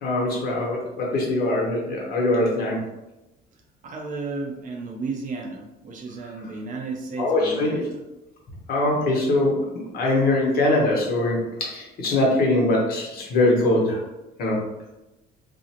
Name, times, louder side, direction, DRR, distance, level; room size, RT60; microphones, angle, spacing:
voice 1, 0.0-2.8 7.2-7.8 8.7-14.0 14.4-14.6, left 2 dB, 60° left, -3 dB, 0.9 m, -22 dB
voice 2, 3.8-7.8, right 3 dB, 50° right, 1 dB, 0.6 m, -33 dB
2.5 x 2.0 x 2.8 m, 0.98 s
cardioid pair, 110°, 17 cm